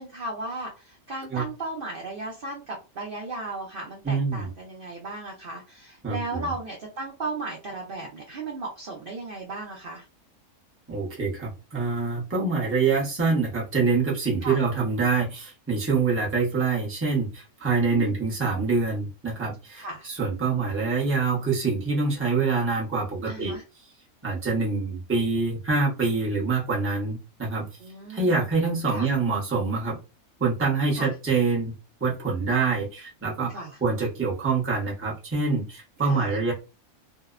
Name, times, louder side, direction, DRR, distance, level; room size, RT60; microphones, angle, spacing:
voice 1, 0.0-10.1 14.4-14.6 17.9-18.1 19.8-20.1 23.3-23.6 27.8-28.4 28.9-29.1 31.0-31.1 33.5-33.8 36.0-36.3, right 2 dB, 60° right, 0 dB, 0.5 m, -35 dB
voice 2, 4.0-4.5 6.0-6.5 10.9-23.6 24.2-27.7 28.1-30.0 30.4-31.7 32.0-36.5, right 4 dB, 15° right, -4 dB, 0.5 m, -25 dB
2.6 x 2.0 x 2.4 m, 0.30 s
omnidirectional pair, 1.5 m